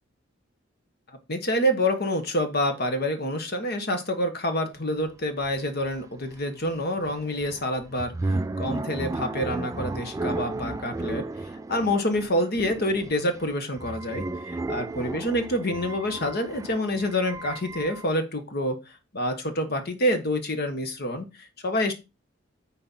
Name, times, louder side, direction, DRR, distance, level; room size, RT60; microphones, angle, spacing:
voice 1, 1.3-8.1 8.6-11.2 11.7-18.8 19.1-21.9, left 1 dB, 55° left, 7 dB, 1.2 m, -27 dB
sound 1, 5.1-5.2 5.4-18.2, right 2 dB, 15° right, 0.3 m, -34 dB
9.7 x 4.2 x 4.2 m, 0.27 s
head